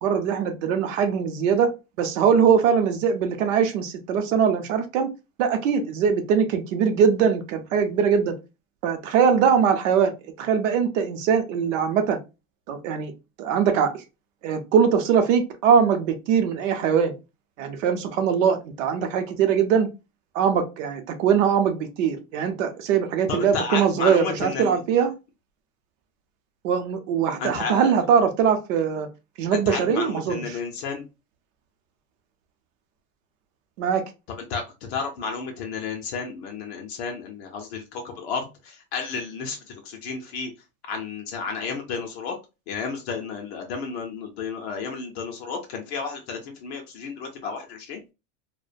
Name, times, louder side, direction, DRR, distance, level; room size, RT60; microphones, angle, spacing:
voice 1, 0.0-5.1 5.4-8.3 8.8-10.1 10.4-12.2 12.7-13.1 13.4-13.9 14.4-17.1 17.6-19.9 20.3-25.1 26.6-29.1 29.4-30.5 33.8-34.0, right 7 dB, 60° right, 0.6 m, -21 dB
voice 2, 23.3-24.8 27.4-27.9 29.5-31.0 34.3-34.6 34.9-39.6 39.8-40.5 40.9-42.4 42.7-48.0, left 5 dB, 50° left, 0.5 m, -32 dB
2.4 x 2.1 x 2.4 m
supercardioid pair, 155°, 43 cm